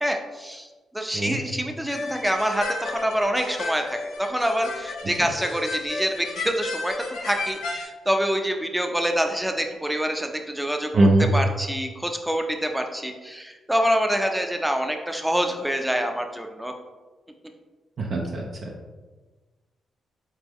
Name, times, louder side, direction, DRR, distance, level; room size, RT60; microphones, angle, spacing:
voice 1, 0.0-0.7 0.9-6.9 7.2-10.9 11.3-16.7, equal, 5° right, 4 dB, 0.6 m, -26 dB
sound 1, 1.9-7.9, left 3 dB, 85° left, 0.7 m, -33 dB
voice 2, 10.9-11.3 18.0-18.7, right 2 dB, 55° right, -1 dB, 0.6 m, -21 dB
4.1 x 3.7 x 3.0 m, 1.3 s
supercardioid pair, 55°, 0 cm